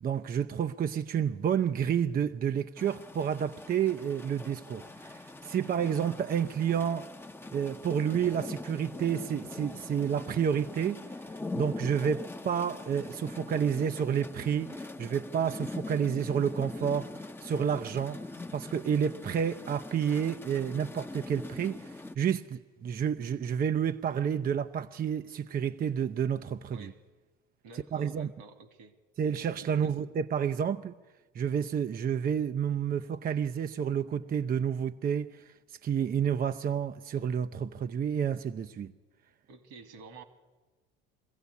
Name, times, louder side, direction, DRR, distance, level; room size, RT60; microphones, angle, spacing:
voice 1, 0.0-7.1 7.5-11.0 11.5-18.2 18.5-26.9 27.9-28.3 29.2-30.9 31.3-38.9, right 8 dB, 30° right, 0.6 m, -30 dB
sound 1, 2.8-22.2, left 2 dB, 10° left, 0.8 m, -42 dB
voice 2, 27.6-29.0 29.5-30.0 39.5-40.2, right 4 dB, 70° right, 2.6 m, -50 dB
23.0 x 15.0 x 8.3 m
hypercardioid pair, 80°, 29 cm